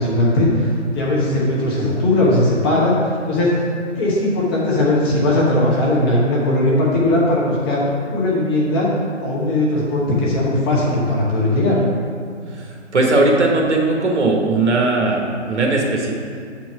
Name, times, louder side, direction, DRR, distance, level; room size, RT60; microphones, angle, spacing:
voice 1, 0.0-2.9 3.2-3.6 4.0-8.9 9.2-11.8, left 1 dB, 20° left, -6 dB, 1.1 m, -18 dB
voice 2, 12.5-16.1, right 2 dB, 65° right, 0 dB, 1.4 m, -18 dB
7.4 x 4.5 x 5.0 m, 2.2 s
figure-of-eight pair, 145°, 37 cm